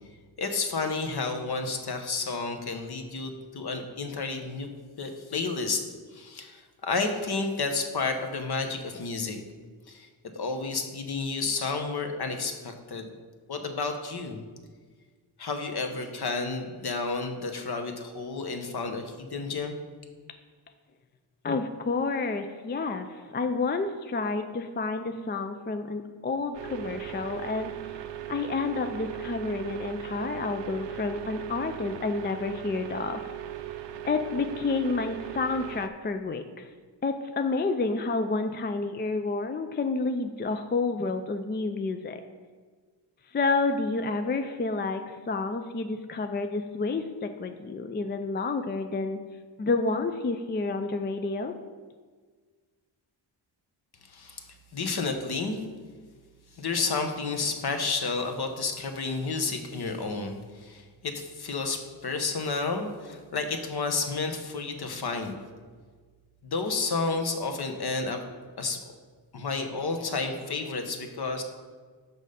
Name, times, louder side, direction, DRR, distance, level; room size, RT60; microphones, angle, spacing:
voice 1, 0.4-4.7 5.0-5.8 6.1-9.4 9.9-10.1 10.3-13.1 13.5-14.4 15.4-19.8 54.1-54.5 54.7-55.6 56.6-65.3 66.4-68.2 68.6-68.8 69.3-71.4, left 4 dB, 50° left, 6 dB, 1.0 m, -31 dB
voice 2, 21.4-28.0 28.3-33.2 34.1-36.7 37.0-42.2 43.3-49.2 49.6-51.5, left 3 dB, 25° left, 7 dB, 0.4 m, -29 dB
sound 1, 26.5-35.9, right 11 dB, 60° right, 0.6 m, -38 dB
6.2 x 5.4 x 5.1 m, 1.5 s
cardioid pair, 70°, 48 cm